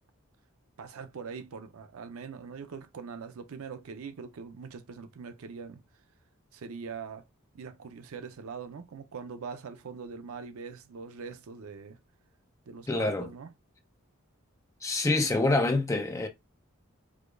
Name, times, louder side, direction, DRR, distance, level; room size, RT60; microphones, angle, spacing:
voice 1, 0.8-5.8 6.5-7.3 7.5-12.0 12.7-13.5, right 5 dB, 80° right, 0.5 m, -42 dB
voice 2, 12.9-13.3 14.8-16.3, left 2 dB, 15° left, 0.4 m, -26 dB
4.8 x 2.3 x 2.3 m
head